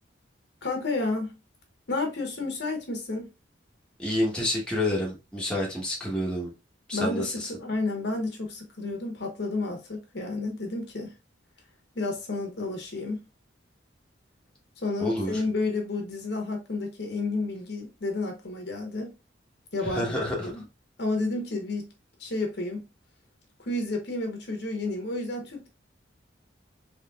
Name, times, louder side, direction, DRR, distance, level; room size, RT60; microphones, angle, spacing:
voice 1, 0.6-1.4 1.9-3.3 6.9-11.1 11.9-13.2 14.8-19.1 19.7-20.1 20.4-20.6 21.0-21.9 22.2-22.8 23.6-25.7, left 2 dB, 60° left, 1.0 m, -31 dB
voice 2, 4.0-6.5 6.9-7.5 15.0-15.4 19.8-20.5, left 1 dB, 5° left, 1.1 m, -29 dB
3.9 x 3.0 x 2.3 m
head